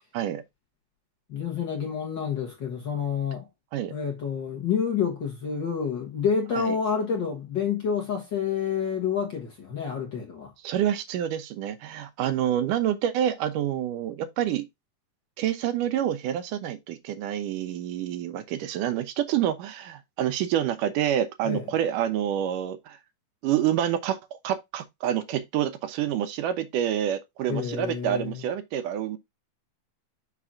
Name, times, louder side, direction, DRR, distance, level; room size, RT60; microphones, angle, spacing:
voice 1, 1.3-3.5 3.9-10.5 21.4-21.7 27.5-28.5, left 7 dB, 45° left, 1.6 m, -28 dB
voice 2, 10.6-14.7 15.4-23.0 23.4-24.2 24.4-29.2, right 10 dB, 85° right, 2.5 m, -27 dB
6.0 x 5.8 x 3.7 m
omnidirectional pair, 3.7 m